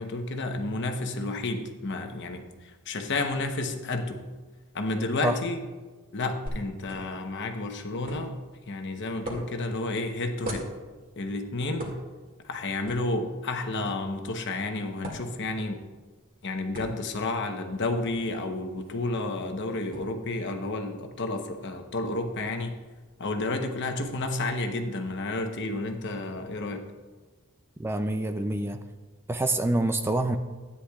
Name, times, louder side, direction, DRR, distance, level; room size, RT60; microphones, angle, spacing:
voice 1, 0.0-4.2 4.7-5.6 6.1-8.4 8.7-10.7 11.2-11.9 12.4-15.8 16.4-22.8 23.2-26.9, left 2 dB, 55° left, 5 dB, 0.9 m, -31 dB
sound 1, 6.5-24.2, equal, 40° right, 2.2 m, -45 dB
voice 2, 27.8-28.8 29.3-30.4, right 2 dB, 10° right, 7 dB, 0.4 m, -26 dB
13.0 x 9.7 x 2.4 m, 1.3 s
head